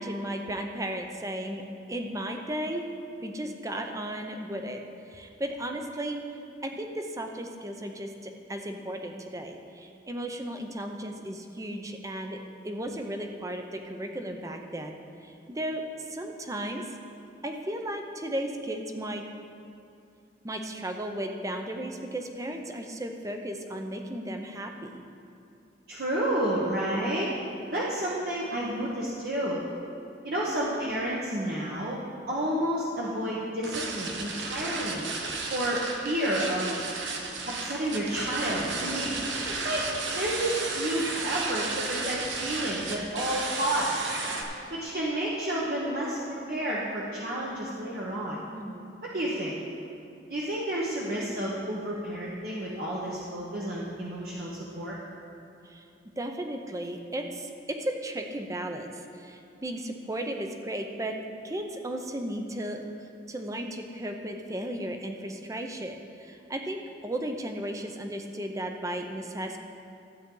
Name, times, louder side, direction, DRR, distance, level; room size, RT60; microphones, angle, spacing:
voice 1, 0.0-1.6 1.9-2.9 3.2-4.8 5.1-6.2 6.6-12.4 12.6-16.9 17.4-19.2 20.4-25.0 48.5-48.9 55.7-55.9 56.2-61.2 61.4-69.6, right 1 dB, 20° right, 4 dB, 0.7 m, -35 dB
voice 2, 25.9-27.3 27.7-29.6 30.2-32.0 32.3-35.1 35.5-36.8 37.5-39.1 39.5-44.0 44.7-48.4 49.1-49.6 50.3-55.0, right 1 dB, 55° right, -6 dB, 1.1 m, -30 dB
sound 1, 33.6-44.4, right 3 dB, 90° right, 1.1 m, -33 dB
13.0 x 8.4 x 3.9 m, 2.6 s
head